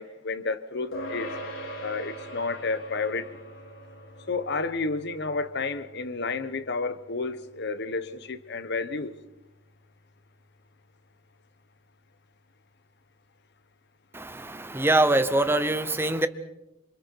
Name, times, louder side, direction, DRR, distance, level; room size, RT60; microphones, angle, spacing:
voice 1, 0.0-1.3 1.8-3.2 4.3-9.1, left 3 dB, 60° left, 13 dB, 1.1 m, -31 dB
sound 1, 0.9-10.6, equal, 90° left, 5.6 m, -43 dB
voice 2, 14.1-16.3, right 2 dB, 10° right, 11 dB, 0.9 m, -24 dB
28.5 x 26.5 x 4.7 m, 0.93 s
head